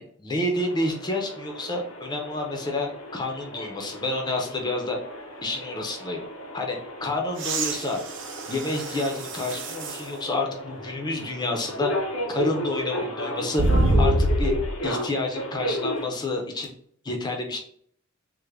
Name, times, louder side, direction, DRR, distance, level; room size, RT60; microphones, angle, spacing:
voice 1, 0.2-5.0 5.4-6.2 6.5-8.0 8.5-11.9 12.3-13.7 14.0-14.5 14.8-16.7 17.0-17.6, left 2 dB, 20° left, 1 dB, 0.5 m, -29 dB
sound 1, 0.6-16.1, left 1 dB, 70° left, 0.6 m, -34 dB
sound 2, 7.3-10.1 10.8-10.9 13.6-14.8 16.6-16.7, right 1 dB, 60° right, 0.5 m, -25 dB
3.2 x 2.1 x 3.4 m, 0.63 s
head